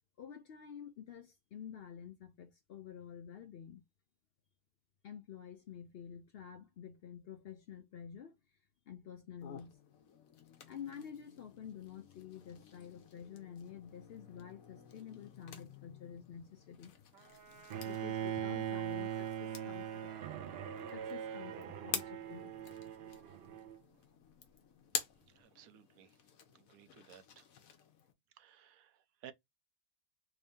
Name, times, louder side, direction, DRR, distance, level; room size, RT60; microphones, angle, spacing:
voice 1, 0.2-3.8 5.0-8.4 8.9-9.8 10.7-16.9 17.8-20.1 20.9-22.6, left 8 dB, 65° left, 0.6 m, -49 dB
sound 1, 9.4-28.1, left 7 dB, 80° left, 1.2 m, -49 dB
Trumpet, 17.1-22.4, right 7 dB, 45° right, 1.7 m, -59 dB
Bowed string instrument, 17.7-23.8, right 10 dB, 65° right, 0.6 m, -41 dB
voice 2, 25.3-26.2 26.5-27.4 28.4-29.3, right 10 dB, 85° right, 1.1 m, -57 dB
3.5 x 2.7 x 3.4 m
omnidirectional pair, 1.4 m